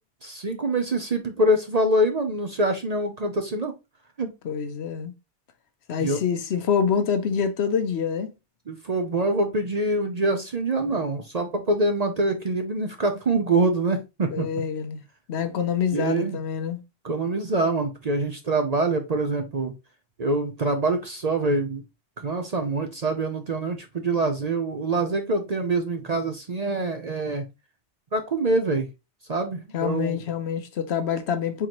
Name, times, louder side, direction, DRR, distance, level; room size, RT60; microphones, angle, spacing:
voice 1, 0.2-3.7 4.2-4.3 6.0-6.2 8.7-14.5 15.9-16.4 17.0-19.7 20.2-21.8 22.2-27.4 28.1-28.9 29.3-30.2, right 2 dB, 45° right, 0.6 m, -25 dB
voice 2, 4.4-5.1 5.9-8.3 14.3-15.0 15.3-16.8 29.7-31.7, left 7 dB, 70° left, 0.9 m, -26 dB
4.6 x 3.8 x 3.0 m
omnidirectional pair, 1.2 m